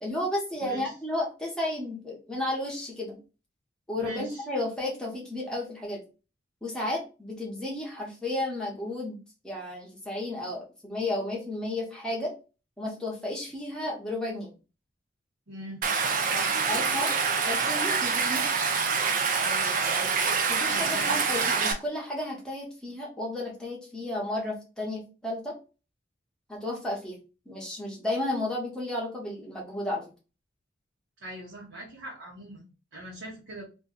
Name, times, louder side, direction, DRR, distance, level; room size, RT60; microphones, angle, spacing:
voice 1, 0.0-3.2 3.9-6.0 6.6-9.2 9.4-12.3 12.8-14.5 16.7-17.1 17.5-18.4 20.5-25.6 26.5-27.2 27.5-30.0, left 1 dB, 5° left, -3 dB, 0.8 m, -33 dB
voice 2, 0.6-0.9 4.0-4.4 15.5-15.9 16.3-16.5 19.4-20.3 20.6-21.3 31.2-33.6, right 1 dB, 75° right, -4 dB, 0.9 m, -41 dB
Stream, 15.8-21.7, right 5 dB, 45° right, 0.4 m, -26 dB
2.6 x 2.2 x 3.6 m, 0.33 s
head